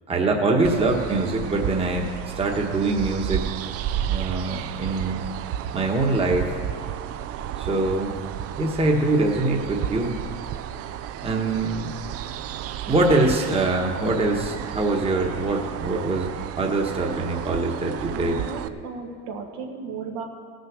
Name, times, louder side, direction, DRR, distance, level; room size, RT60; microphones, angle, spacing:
voice 1, 0.1-2.1 2.4-3.5 4.1-5.2 5.7-6.6 7.6-8.1 8.6-10.2 11.2-11.9 12.9-16.3 16.6-18.4, right 2 dB, 15° right, 1 dB, 1.3 m, -23 dB
sound 1, 0.6-18.7, right 10 dB, 45° right, 0.5 m, -32 dB
voice 2, 18.1-20.2, right 4 dB, 75° right, 2 dB, 1.8 m, -35 dB
17.5 x 6.6 x 6.1 m, 2.2 s
cardioid pair, 130°, 34 cm